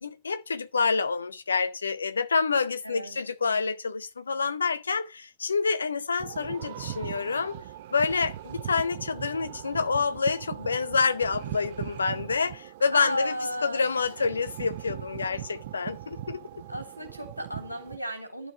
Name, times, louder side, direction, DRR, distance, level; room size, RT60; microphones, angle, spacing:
voice 1, 0.0-7.6 7.9-13.3 13.6-16.5, left 5 dB, 75° left, 0.8 m, -27 dB
voice 2, 2.8-3.2 12.9-13.9 14.2-14.3 16.7-18.5, equal, 90° right, 3.5 m, -35 dB
sound 1, 6.2-18.0, right 13 dB, 55° right, 0.7 m, -40 dB
11.5 x 5.9 x 9.1 m
figure-of-eight pair, 90°, 0 cm